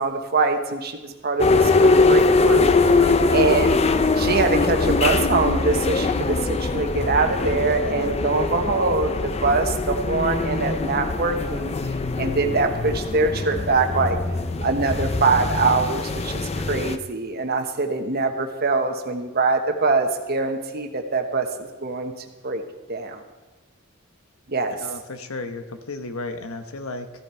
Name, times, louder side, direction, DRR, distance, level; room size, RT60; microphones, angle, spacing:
voice 1, 0.0-2.7 3.3-3.8 4.1-11.7 12.2-14.2 14.6-22.1 22.4-22.6 22.9-23.2 24.5-24.7, right 3 dB, 50° right, 5 dB, 1.2 m, -23 dB
sound 1, 1.4-17.0, left 3 dB, 30° left, 0.5 m, -22 dB
voice 2, 24.7-27.1, left 2 dB, 80° left, 8 dB, 1.0 m, -34 dB
14.5 x 11.0 x 4.4 m, 1.2 s
head